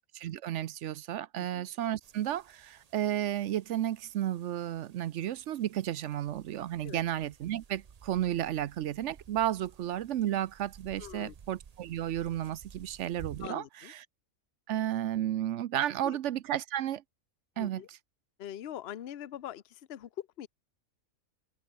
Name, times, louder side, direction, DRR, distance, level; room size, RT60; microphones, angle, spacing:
voice 1, 0.1-14.0 14.7-17.0 17.6-17.8, right 12 dB, 65° right, 0.8 m, -33 dB
sound 1, 2.0-13.5, right 7 dB, 45° right, 0.5 m, -55 dB
voice 2, 11.0-11.3 13.4-13.9 16.0-16.2 17.6-17.9 18.4-20.5, left 11 dB, 55° left, 0.9 m, -43 dB
omnidirectional pair, 1.5 m